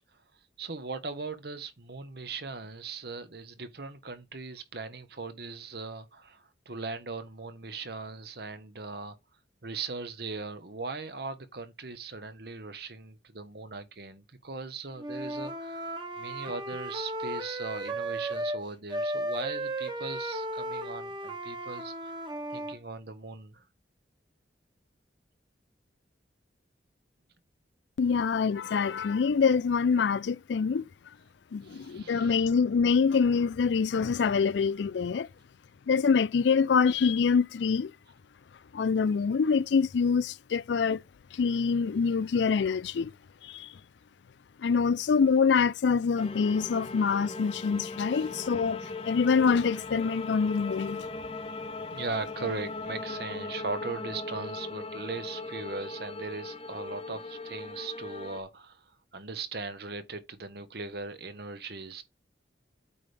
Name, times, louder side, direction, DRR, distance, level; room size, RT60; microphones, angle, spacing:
voice 1, 0.6-9.2 9.6-22.1 22.5-23.6 31.6-32.5 48.1-48.3 51.9-58.8 59.1-62.0, right 4 dB, 60° right, 1.1 m, -39 dB
Wind instrument woodwind instrument, 15.0-18.6 18.9-22.8, right 1 dB, 25° right, 1.3 m, -35 dB
voice 2, 28.0-30.8 31.5-35.3 35.9-37.9 38.7-41.0 41.3-43.1 43.4-43.7 44.6-48.8 49.0-51.0, left 5 dB, 75° left, 0.4 m, -25 dB
sound 1, 46.2-58.4, left 3 dB, 30° left, 0.8 m, -39 dB
8.5 x 3.4 x 5.1 m
head